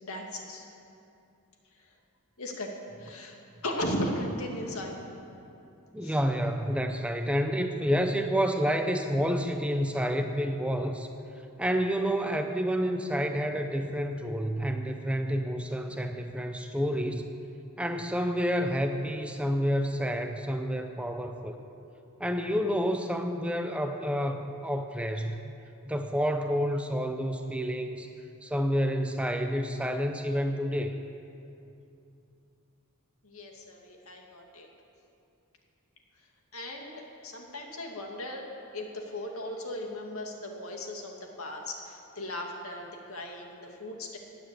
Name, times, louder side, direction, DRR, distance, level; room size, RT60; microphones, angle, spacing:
voice 1, 0.0-0.7 2.4-2.7 3.0-3.4 3.6-5.0 6.0-6.2 33.2-34.7 36.5-38.4 38.7-44.2, left 1 dB, 70° left, 1 dB, 2.3 m, -37 dB
voice 2, 5.9-11.1 11.6-17.3 17.8-21.6 22.2-25.4 25.8-28.1 28.4-30.9, equal, 5° right, 5 dB, 0.7 m, -29 dB
17.0 x 9.9 x 8.4 m, 2.7 s
head